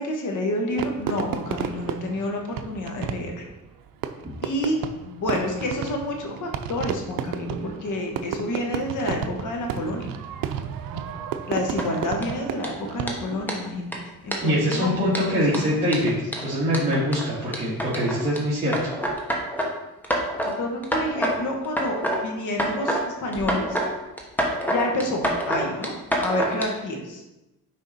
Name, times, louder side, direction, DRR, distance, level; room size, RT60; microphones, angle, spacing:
voice 1, 0.0-3.5 4.4-10.1 11.5-14.0 14.2-14.9 15.5-15.6 16.4-16.5 20.4-22.0 22.2-23.8 24.7-27.2, left 1 dB, 60° left, 2 dB, 1.5 m, -29 dB
Fireworks, 0.8-13.5, right 8 dB, 80° right, 0.6 m, -32 dB
sound 1, 11.8-12.2 12.6-12.7 13.1-13.2 13.5-13.6 13.9-14.0 14.3-14.7 15.1-18.4 18.7-19.7 20.0-20.5 20.8-21.4 21.6-22.2 22.5-23.0 23.3-23.9 24.2-26.6, right 1 dB, 5° left, 1.2 m, -26 dB
voice 2, 14.4-16.1 16.4-18.9, equal, 20° right, -10 dB, 2.2 m, -23 dB
6.5 x 5.0 x 4.2 m, 0.98 s
cardioid pair, 115°, 34 cm